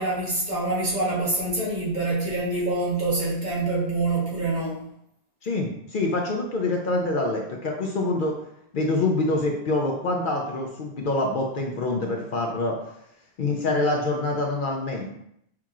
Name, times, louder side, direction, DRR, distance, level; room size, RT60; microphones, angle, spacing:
voice 1, 0.0-4.8, right 2 dB, 45° right, -6 dB, 1.4 m, -26 dB
voice 2, 5.4-8.3 8.7-12.8 13.4-15.1, left 2 dB, 60° left, 0 dB, 0.7 m, -25 dB
5.8 x 2.8 x 2.4 m, 0.75 s
omnidirectional pair, 1.1 m